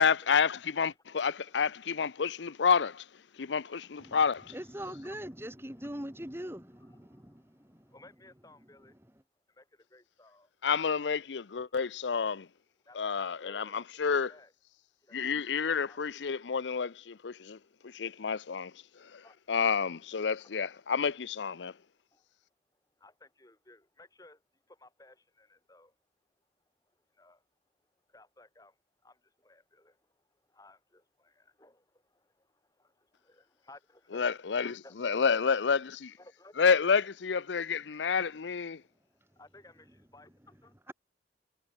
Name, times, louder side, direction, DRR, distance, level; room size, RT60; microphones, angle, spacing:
voice 1, 0.0-2.9 3.4-4.3 10.6-12.5 13.0-14.3 15.1-17.6 17.9-18.7 19.5-21.7 34.1-36.1 36.6-38.8, left 6 dB, 90° left, 0.6 m, -29 dB
voice 2, 0.7-3.0 3.3-4.6 4.9-5.2 6.8-9.0 9.5-10.6 11.5-11.8 12.8-14.5 15.0-16.5 18.8-19.6 20.5-21.2 21.9-22.2 22.7-26.0 26.9-27.4 27.8-35.5 36.2-36.7 38.6-40.7, left 2 dB, 20° left, 6.1 m, -60 dB
voice 3, 4.5-7.9 40.9-41.0, equal, 15° right, 2.9 m, -42 dB
head